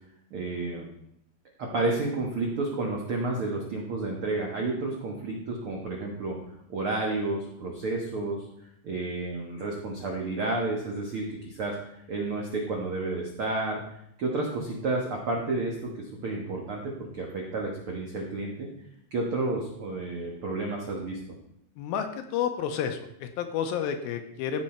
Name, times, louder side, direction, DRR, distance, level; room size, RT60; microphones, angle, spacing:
voice 1, 0.3-0.9 1.6-6.4 6.7-8.4 8.8-11.7 12.1-13.8 14.2-15.9 16.2-18.7 19.1-21.2, right 2 dB, 85° right, -1 dB, 1.2 m, -31 dB
voice 2, 21.8-24.6, left 8 dB, 80° left, 6 dB, 2.4 m, -30 dB
15.0 x 5.5 x 4.3 m, 0.74 s
omnidirectional pair, 4.6 m